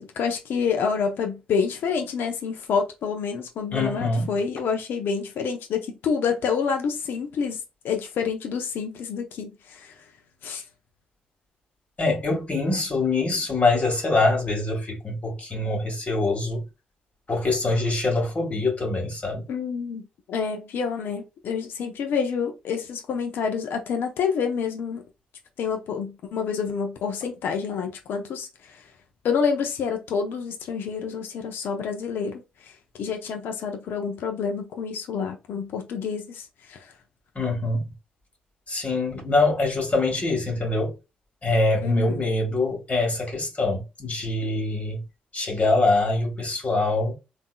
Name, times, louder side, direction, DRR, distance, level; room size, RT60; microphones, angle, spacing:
voice 1, 0.0-7.6 7.8-9.9 10.4-10.6 19.5-25.0 25.6-28.7 29.2-32.7 33.0-36.8 41.8-42.3, left 6 dB, 65° left, 0.7 m, -28 dB
voice 2, 3.7-4.3 12.0-16.7 17.3-19.5 37.3-37.9 38.7-40.9 41.4-45.0 45.3-47.1, left 2 dB, 40° left, 1.7 m, -24 dB
3.6 x 2.8 x 2.3 m
hypercardioid pair, 45°, 4 cm